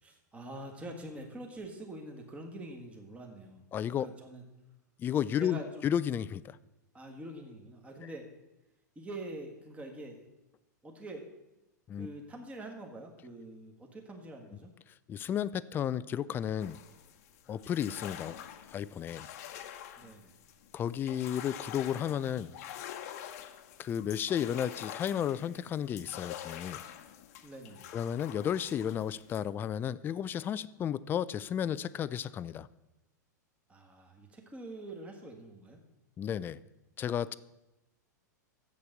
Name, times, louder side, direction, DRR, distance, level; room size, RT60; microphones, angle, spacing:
voice 1, 0.0-3.7 4.0-4.4 5.4-5.8 6.9-8.3 8.9-10.2 10.8-11.3 11.9-14.7 20.0-20.4 27.4-27.9 33.7-35.8, right 1 dB, 15° right, 2 dB, 1.5 m, -45 dB
voice 2, 3.7-4.1 5.0-6.6 11.9-12.1 15.1-16.8 17.5-18.4 18.7-19.3 20.7-22.6 23.8-26.8 27.9-32.7 36.2-36.6 37.0-37.3, left 9 dB, 20° left, 17 dB, 0.3 m, -33 dB
sound 1, 16.6-29.4, left 10 dB, 55° left, 0.9 m, -46 dB
7.4 x 6.9 x 7.9 m, 0.96 s
hypercardioid pair, 100°, 10 cm